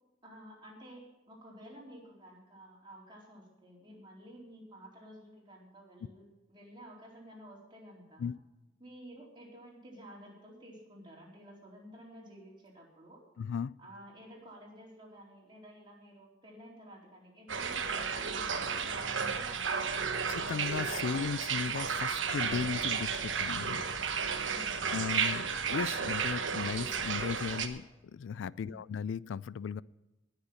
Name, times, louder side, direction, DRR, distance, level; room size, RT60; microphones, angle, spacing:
voice 1, 0.2-8.3 8.8-13.2 13.8-20.1 24.4-24.8 28.6-28.8, equal, 25° right, -3 dB, 4.1 m, -52 dB
voice 2, 13.4-13.7 20.3-23.8 24.9-29.8, left 6 dB, 75° left, 21 dB, 0.3 m, -36 dB
sound 1, 17.5-27.7, right 6 dB, 85° right, 1.2 m, -33 dB
19.5 x 6.8 x 5.6 m, 1.1 s
head